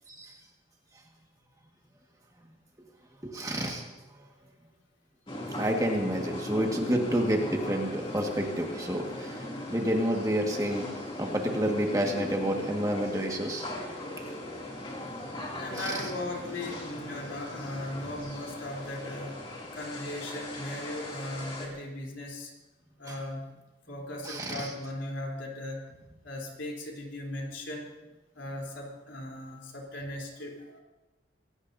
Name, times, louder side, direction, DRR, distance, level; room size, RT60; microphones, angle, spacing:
voice 1, 3.2-3.9 5.6-9.4 9.7-10.9 11.2-13.7 15.8-16.0 23.1-23.2 24.3-24.7, equal, 20° right, 1 dB, 1.7 m, -29 dB
sound 1, 5.3-21.7, left 1 dB, 30° left, 2.7 m, -39 dB
voice 2, 15.6-19.4 19.7-22.5 23.0-23.5 23.9-25.8 26.2-27.9 28.3-30.8, left 1 dB, 80° left, -1 dB, 3.6 m, -38 dB
24.5 x 17.0 x 2.7 m, 1.1 s
head